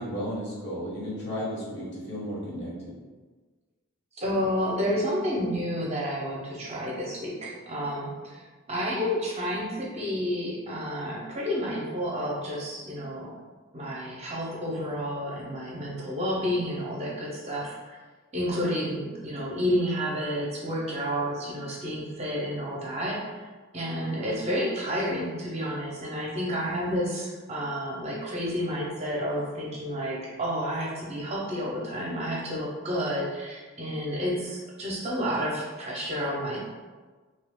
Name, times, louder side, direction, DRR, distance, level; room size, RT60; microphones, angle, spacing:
voice 1, 0.0-2.9, equal, 50° left, -5 dB, 0.9 m, -34 dB
voice 2, 4.1-8.4 8.7-13.3 13.7-18.0 18.3-23.4 23.7-36.6, equal, 30° right, -4 dB, 0.6 m, -30 dB
2.8 x 2.4 x 3.5 m, 1.3 s
head